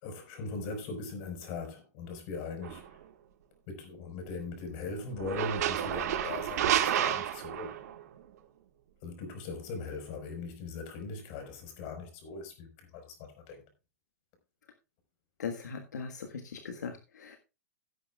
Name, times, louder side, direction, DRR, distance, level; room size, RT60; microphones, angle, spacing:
voice 1, 0.0-2.8 3.7-7.8 9.0-13.6, left 4 dB, 45° left, 5.1 m, -40 dB
sound 1, 2.6-2.9 5.1-8.0, right 11 dB, 65° right, 1.7 m, -30 dB
voice 2, 15.4-17.4, left 6 dB, 85° left, 1.6 m, -39 dB
17.0 x 9.4 x 2.4 m
hypercardioid pair, 125°, 9 cm